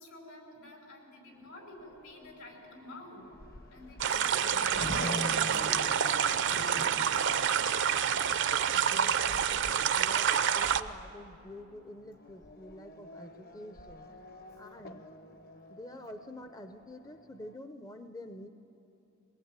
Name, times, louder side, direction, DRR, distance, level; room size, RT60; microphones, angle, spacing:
voice 1, 0.0-3.3 3.7-7.7 15.9-16.3, left 1 dB, 80° left, 1 dB, 5.5 m, -50 dB
Race car auto racing / Accelerating revving vroom, 1.4-17.6, left 1 dB, 45° left, 1.1 m, -46 dB
sound 1, 4.0-10.8, right 8 dB, 55° right, 0.6 m, -28 dB
voice 2, 8.7-14.1 14.6-15.1 15.7-18.5, left 1 dB, 15° left, 7 dB, 0.6 m, -48 dB
22.5 x 20.0 x 8.9 m, 2.9 s
head